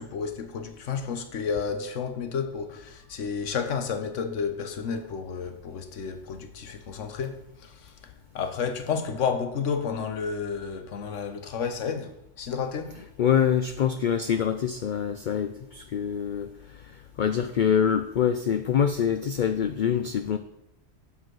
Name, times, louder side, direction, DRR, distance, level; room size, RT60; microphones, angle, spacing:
voice 1, 0.0-13.0, left 6 dB, 80° left, 1.3 m, -31 dB
voice 2, 13.2-16.8 17.2-20.4, left 8 dB, 60° left, 0.5 m, -25 dB
7.7 x 5.6 x 6.1 m
omnidirectional pair, 1.3 m